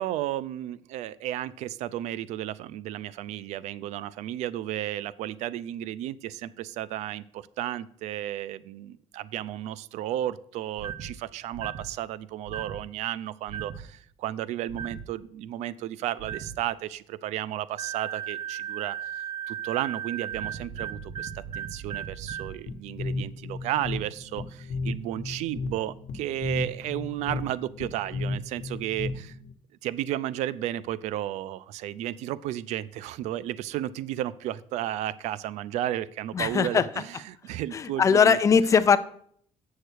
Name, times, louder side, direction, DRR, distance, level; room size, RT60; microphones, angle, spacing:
voice 1, 0.0-29.4 29.8-38.4, right 13 dB, 85° right, 19 dB, 0.4 m, -33 dB
sound 1, 10.8-11.1 11.5-11.9 12.5-12.8 13.5-13.8 14.7-15.1 16.2-16.6 17.8-22.6, right 9 dB, 50° right, 0.7 m, -36 dB
sound 2, 22.7-29.5, left 3 dB, 70° left, 1.0 m, -34 dB
voice 2, 36.3-36.9 37.7-39.0, left 6 dB, 30° left, 13 dB, 0.4 m, -20 dB
8.0 x 6.5 x 4.5 m, 0.62 s
cardioid pair, 155°, 11 cm